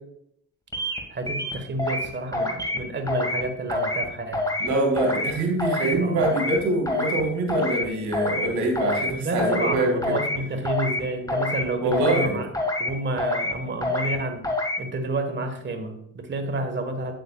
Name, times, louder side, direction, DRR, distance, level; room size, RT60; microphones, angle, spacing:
sound 1, 0.7-1.0 1.3-2.1 2.3-2.8 3.1-3.4 3.7-4.0 4.3-4.7 5.0-5.3 5.6-5.9 6.2-6.6 6.9-7.2 7.5-7.8 8.1-8.5 8.8-9.1 9.4-9.7 10.0-10.4 10.6-11.0 11.3-11.6 11.9-12.3 12.5-12.9 13.2-13.5 13.8-14.2 14.4-14.8, left 2 dB, 10° left, 1.7 m, -26 dB
voice 1, 1.1-4.4 6.0-6.3 9.1-12.5 12.8-14.4 14.8-17.1, right 2 dB, 40° right, 5 dB, 1.4 m, -30 dB
voice 2, 4.6-10.2 11.8-12.4, right 2 dB, 80° right, 0 dB, 3.0 m, -24 dB
8.6 x 7.8 x 2.4 m, 0.73 s
cardioid pair, 90°, 30 cm